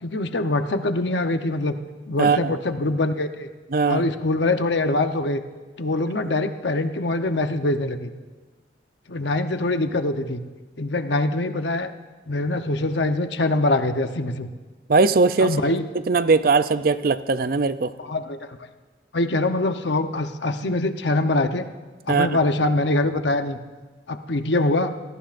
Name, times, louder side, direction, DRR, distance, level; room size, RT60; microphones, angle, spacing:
voice 1, 0.0-1.8 2.1-3.5 3.9-5.4 5.8-8.1 9.1-10.4 10.8-11.9 12.3-14.5 15.4-15.8 18.0-18.6 19.1-21.7 22.1-23.6 24.1-24.9, left 2 dB, 75° left, 7 dB, 0.9 m, -23 dB
voice 2, 3.7-4.0 14.9-15.6 16.1-17.9 22.1-22.3, right 4 dB, 50° right, 13 dB, 0.5 m, -19 dB
24.5 x 17.5 x 2.6 m, 1.3 s
head